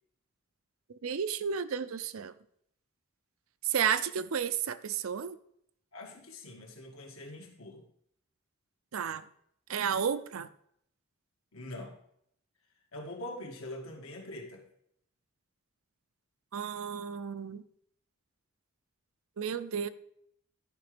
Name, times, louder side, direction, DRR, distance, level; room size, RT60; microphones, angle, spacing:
voice 1, 0.9-2.3 3.6-5.4 8.9-9.3 9.7-10.5 16.5-17.6 19.4-19.9, right 7 dB, 80° right, 13 dB, 0.5 m, -32 dB
voice 2, 5.9-7.9 11.5-12.0 12.9-14.6, left 1 dB, 80° left, 1 dB, 1.9 m, -43 dB
11.5 x 5.0 x 5.1 m, 0.70 s
head